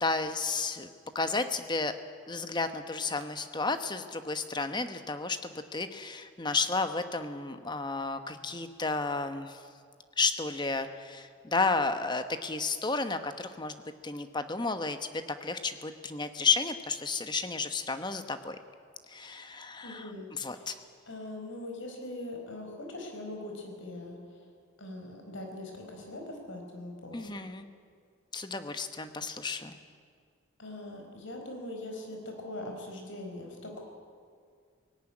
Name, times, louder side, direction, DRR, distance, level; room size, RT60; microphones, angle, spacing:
voice 1, 0.0-0.9 1.1-1.9 2.3-9.6 10.2-13.7 14.0-18.6 19.1-20.8 27.1-27.7 28.3-29.7, left 4 dB, 20° left, 9 dB, 1.0 m, -32 dB
voice 2, 19.8-20.3 20.5-20.7 21.1-24.5 24.8-27.5 30.6-33.8, left 1 dB, 65° left, 2 dB, 4.7 m, -41 dB
18.0 x 17.5 x 9.9 m, 2.1 s
head